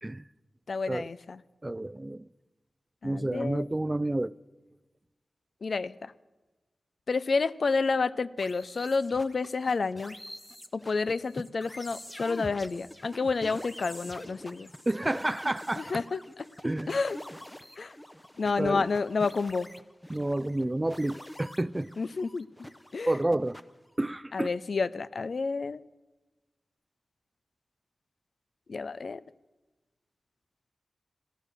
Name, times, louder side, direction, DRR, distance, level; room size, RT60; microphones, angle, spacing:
voice 1, 0.7-1.4 3.0-3.7 5.6-6.1 7.1-10.2 10.7-14.7 15.8-16.4 16.9-17.2 17.8-17.9 18.4-19.7 22.0-22.5 22.9-23.1 24.3-25.8 28.7-29.2, left 4 dB, 70° left, 0.4 m, -30 dB
voice 2, 1.6-2.3 3.0-4.3 14.9-16.0 16.6-17.0 18.6-18.9 20.1-21.9 23.0-23.6 24.0-24.5, right 1 dB, 25° right, 0.3 m, -30 dB
sound 1, 8.4-23.9, left 1 dB, 15° left, 0.7 m, -46 dB
12.5 x 12.0 x 6.5 m
cardioid pair, 50°, 0 cm